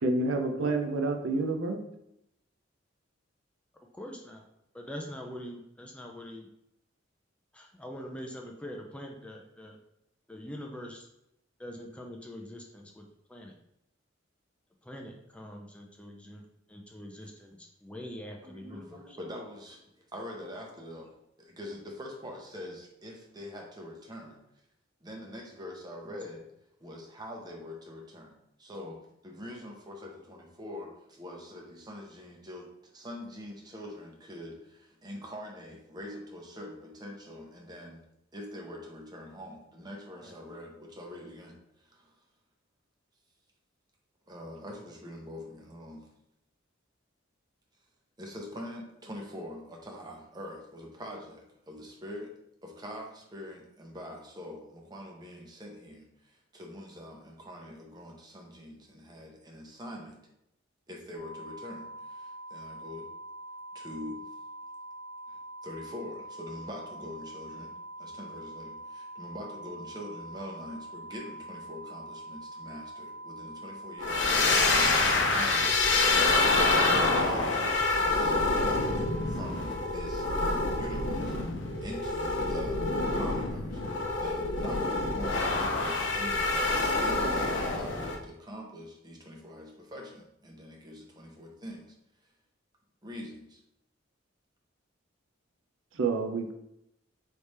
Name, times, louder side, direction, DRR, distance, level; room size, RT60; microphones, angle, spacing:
voice 1, 0.0-1.8 95.9-96.5, right 3 dB, 80° right, 4 dB, 0.5 m, -28 dB
voice 2, 3.9-4.4 4.7-6.5 7.5-9.8 10.3-11.1 11.6-13.0 13.3-13.5 14.8-16.4 16.7-19.2 26.0-26.2 40.1-40.3, equal, 5° left, 1 dB, 0.4 m, -43 dB
voice 3, 18.4-19.8 20.1-21.1 21.5-24.4 25.0-26.4 26.8-28.3 28.6-29.0 29.2-38.0 38.3-41.6 41.9-42.1 44.3-46.0 48.2-52.3 52.6-56.1 56.5-60.2 60.9-63.1 63.7-64.2 65.6-67.7 68.0-75.0 75.3-76.0 76.3-81.3 81.8-82.8 83.2-83.8 84.2-86.6 86.9-91.9 93.0-93.6, left 1 dB, 20° right, 0 dB, 0.8 m, -44 dB
sound 1, 61.2-81.0, right 1 dB, 35° left, 1.0 m, -44 dB
sound 2, 74.0-88.2, left 3 dB, 65° left, 0.6 m, -27 dB
3.3 x 3.3 x 4.2 m, 0.80 s
head